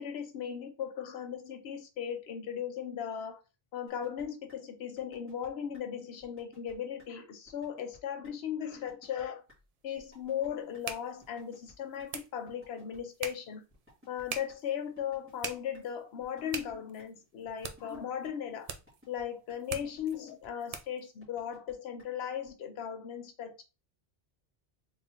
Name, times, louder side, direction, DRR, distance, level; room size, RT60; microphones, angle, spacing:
voice 1, 0.0-3.4 3.7-9.4 9.8-13.6 14.1-18.7 19.1-23.6, left 8 dB, 85° left, 7 dB, 0.9 m, -37 dB
sound 1, 3.9-4.2 4.5-4.6 5.0-5.5 5.7-5.8 6.2-6.7 7.0-7.1 7.5-8.0 8.2-8.3 8.7-9.2 9.5-9.6 10.0-10.5 10.7-10.8 11.2-12.1 12.5-13.3 13.7-14.6 15.0-15.5 15.7-15.8 16.2-16.7 17.0-17.1 17.5-18.0 18.2-18.3 18.7-19.2 19.5-19.6 20.0-20.5 20.7-20.8 21.2-21.7 22.0-22.1 22.5-22.6, left 1 dB, 10° right, 1.7 m, -59 dB
sound 2, 9.5-21.1, right 6 dB, 50° right, 0.5 m, -45 dB
4.0 x 3.6 x 2.8 m, 0.29 s
omnidirectional pair, 1.0 m